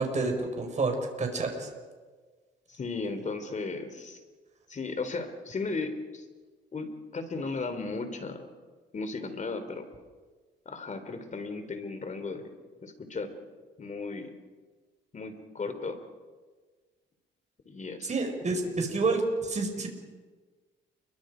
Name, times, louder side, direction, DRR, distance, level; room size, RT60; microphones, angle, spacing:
voice 1, 0.0-1.7 18.1-19.9, right 3 dB, 35° right, 3 dB, 5.5 m, -29 dB
voice 2, 2.7-4.2 4.7-6.2 6.7-8.5 8.9-9.9 10.6-12.5 12.8-13.3 13.8-14.3 15.1-16.0 17.6-18.1 18.4-18.5, left 3 dB, 40° left, 8 dB, 3.4 m, -35 dB
29.5 x 23.0 x 5.1 m, 1.4 s
cardioid pair, 90°, 20 cm